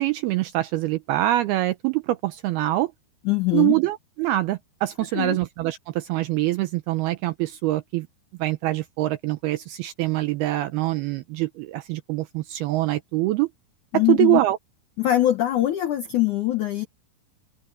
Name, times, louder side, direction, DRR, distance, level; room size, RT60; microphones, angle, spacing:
voice 1, 0.0-2.9 3.5-8.1 8.4-13.5 13.9-14.6, right 16 dB, 85° right, 2.3 m, -24 dB
voice 2, 3.3-3.8 5.1-5.4 13.9-14.4 15.0-16.9, left 14 dB, 80° left, 1.8 m, -22 dB
open air
omnidirectional pair, 5.2 m